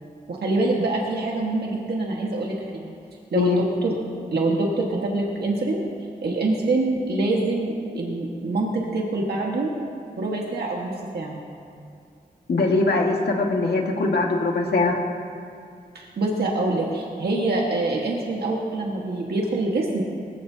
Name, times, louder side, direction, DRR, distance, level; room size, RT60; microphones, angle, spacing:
voice 1, 0.3-2.9 3.3-3.9 4.3-5.8 6.2-9.7 10.2-11.4 15.9-20.0, right 2 dB, 80° right, -2 dB, 1.7 m, -25 dB
voice 2, 12.5-15.0, left 3 dB, 80° left, 0 dB, 1.9 m, -21 dB
23.0 x 16.0 x 2.9 m, 2.3 s
wide cardioid pair, 170°, 16 cm